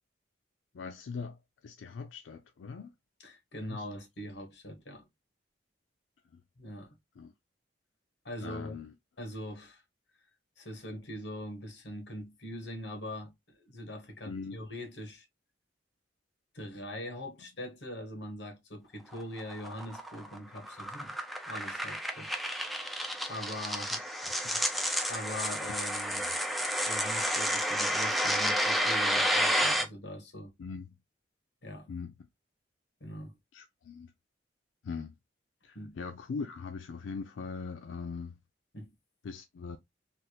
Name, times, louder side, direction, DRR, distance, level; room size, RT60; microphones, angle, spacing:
voice 1, 0.7-2.9 3.6-3.8 6.3-6.4 7.2-7.3 8.4-8.9 14.3-14.6 23.9-24.2 24.4-24.6 26.2-26.3 30.6-31.0 31.9-32.1 33.5-34.1 34.8-35.1 35.6-38.4 39.2-39.8, left 5 dB, 90° left, 0.4 m, -41 dB
voice 2, 3.2-5.1 6.6-6.9 8.2-8.8 9.2-9.8 10.6-15.3 16.5-21.2 21.4-22.8 23.3-23.9 25.1-26.3 26.9-30.5 31.6-31.9 33.0-33.3 35.7-36.0 38.7-38.9, left 1 dB, 65° left, 1.2 m, -42 dB
sound 1, 19.1-29.8, equal, ahead, 0.4 m, -30 dB
3.4 x 2.4 x 2.9 m
head